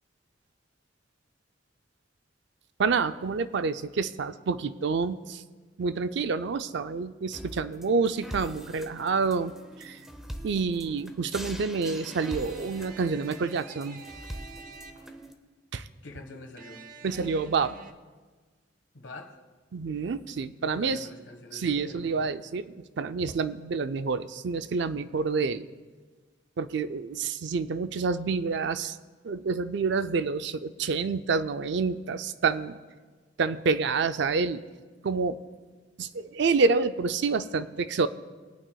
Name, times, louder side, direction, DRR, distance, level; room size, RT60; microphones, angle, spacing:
voice 1, 2.8-5.4 5.8-9.5 9.8-10.0 10.4-14.0 15.7-15.9 17.0-17.8 19.7-21.1 21.5-25.7 26.6-29.0 29.2-32.8 33.4-34.6 35.0-35.4 36.0-38.1, right 4 dB, 70° right, 12 dB, 0.4 m, -28 dB
sound 1, 7.3-15.3, equal, 5° right, 0.7 m, -43 dB
sound 2, 11.8-15.3 16.6-17.9, right 4 dB, 50° right, 0.8 m, -48 dB
voice 2, 16.0-16.9 18.9-19.4 20.6-22.1, left 2 dB, 80° left, 5 dB, 1.4 m, -45 dB
22.5 x 8.8 x 2.3 m, 1.4 s
head